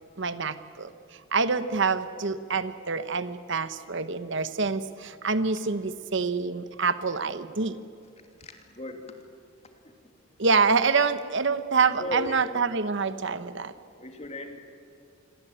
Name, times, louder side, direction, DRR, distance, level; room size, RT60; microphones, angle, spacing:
voice 1, 0.2-0.9 1.3-7.8 10.4-13.7, right 4 dB, 60° right, 13 dB, 1.0 m, -26 dB
voice 2, 8.4-9.1 12.0-12.4 14.0-14.6, left 2 dB, 30° left, 5 dB, 2.8 m, -36 dB
27.5 x 22.0 x 8.8 m, 2.6 s
head